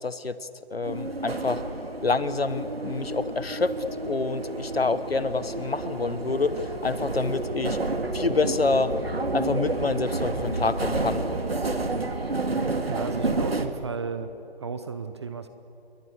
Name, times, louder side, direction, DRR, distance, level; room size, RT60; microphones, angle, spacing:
voice 1, 0.0-1.6 2.0-3.7 4.0-7.8 8.1-9.0 9.3-11.2, left 3 dB, 75° left, 14 dB, 1.3 m, -27 dB
sound 1, 0.8-13.7, right 2 dB, 75° right, 2.3 m, -30 dB
voice 2, 12.9-14.3 14.6-15.5, right 5 dB, 25° right, 10 dB, 0.8 m, -34 dB
28.0 x 22.5 x 6.9 m, 2.8 s
figure-of-eight pair, 150°, 30 cm